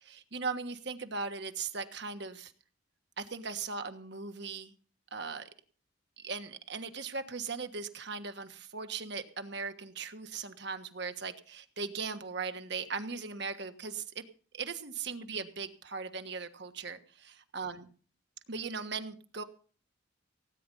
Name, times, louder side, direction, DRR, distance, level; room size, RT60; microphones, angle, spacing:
voice 1, 0.0-2.5 3.2-4.7 5.1-5.5 6.2-14.2 14.5-17.9 18.5-19.4, right 4 dB, 55° right, 8 dB, 1.4 m, -38 dB
17.0 x 9.6 x 5.5 m, 0.42 s
head